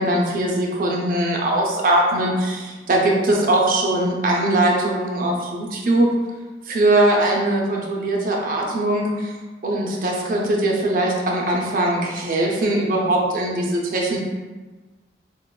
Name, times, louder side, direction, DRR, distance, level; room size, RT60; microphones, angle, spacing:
voice 1, 0.0-6.1 6.7-9.3 9.6-14.2, right 1 dB, 50° right, -1 dB, 0.5 m, -21 dB
4.5 x 2.2 x 2.2 m, 1.3 s
head